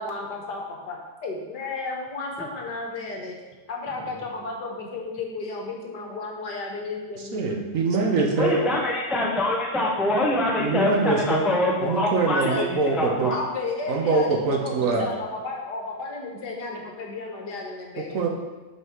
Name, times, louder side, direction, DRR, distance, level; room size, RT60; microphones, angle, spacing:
voice 1, 0.0-3.4 3.7-7.4 10.6-10.7 12.1-12.2 12.4-12.6 13.3-18.2, left 3 dB, 75° left, 0 dB, 1.9 m, -33 dB
voice 2, 7.3-8.5 10.6-11.4 11.8-13.3 13.9-15.1 18.0-18.3, right 3 dB, 55° right, 1 dB, 1.2 m, -23 dB
voice 3, 8.4-13.3, left 1 dB, ahead, -1 dB, 0.4 m, -25 dB
6.1 x 4.7 x 6.1 m, 1.2 s
omnidirectional pair, 1.8 m